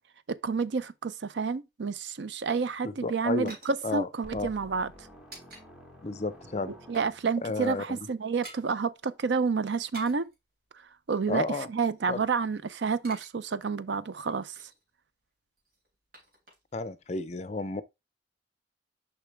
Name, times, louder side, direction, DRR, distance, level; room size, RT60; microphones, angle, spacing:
voice 1, 0.3-4.9 6.7-10.3 11.1-14.5, right 5 dB, 80° right, 0.5 m, -29 dB
sound 1, 2.7-5.7 5.9-6.1 6.5-7.2 7.4-7.6 7.9-8.7 9.7-10.4 11.1-12.5 12.8-13.3 13.6-13.7 14.1-14.9 15.6-16.9 17.1-17.2, right 2 dB, 55° right, 3.6 m, -51 dB
voice 2, 2.8-3.5 3.8-4.5 6.0-6.7 7.4-8.0 11.3-11.7 12.1-12.2 16.7-17.8, left 3 dB, 40° left, 0.5 m, -32 dB
sound 2, 4.2-7.5, equal, 5° right, 1.5 m, -51 dB
6.8 x 5.4 x 3.4 m
head